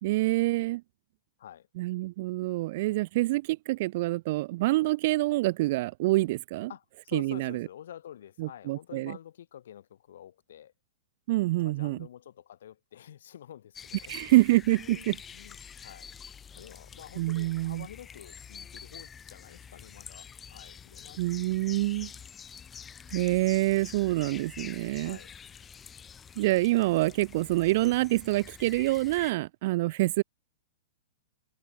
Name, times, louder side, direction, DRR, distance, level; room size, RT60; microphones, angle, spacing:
voice 1, 0.0-0.8 1.8-6.7 7.1-7.6 8.4-9.2 11.3-12.0 14.1-15.2 17.2-17.9 21.2-22.1 23.1-25.2 26.4-30.2, right 19 dB, 50° right, 0.3 m, -26 dB
voice 2, 6.7-10.7 11.6-14.4 14.8-16.1 16.5-21.2 21.6-21.7 25.0-25.4, left 10 dB, 65° left, 1.6 m, -48 dB
sound 1, 13.7-29.3, left 7 dB, 20° left, 1.5 m, -47 dB
hypercardioid pair, 110°, 0 cm